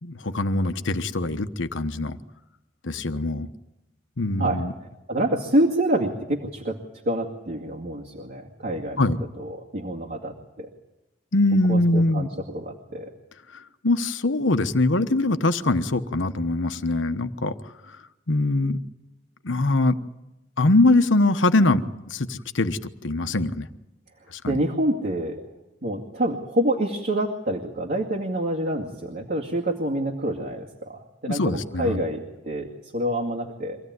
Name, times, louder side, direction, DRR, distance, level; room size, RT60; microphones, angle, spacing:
voice 1, 0.0-2.2 2.8-3.5 4.2-4.7 9.0-9.2 11.3-12.3 13.5-17.5 17.9-18.0 18.3-18.8 19.4-20.0 20.6-23.7 24.3-24.6 31.3-32.0, left 2 dB, 85° left, 10 dB, 1.1 m, -23 dB
voice 2, 4.4-4.7 5.1-6.8 7.1-9.0 9.4-10.7 11.7-12.3 12.5-13.1 24.5-25.5 25.8-33.8, right 1 dB, 55° right, -1 dB, 2.3 m, -27 dB
25.0 x 16.5 x 9.6 m, 0.98 s
head